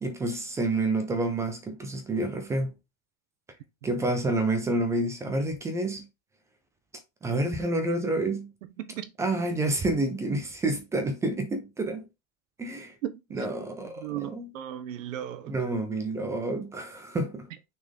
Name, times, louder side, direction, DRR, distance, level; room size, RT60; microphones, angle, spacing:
voice 1, 0.0-2.7 3.8-6.1 7.2-8.5 9.2-12.0 12.6-12.9 13.3-14.5 15.5-17.5, right 2 dB, 10° right, 0.5 m, -29 dB
voice 2, 8.8-9.1 13.0-13.5 14.0-15.6, right 11 dB, 80° right, 1.2 m, -36 dB
6.2 x 4.3 x 3.5 m
supercardioid pair, 170°, 39 cm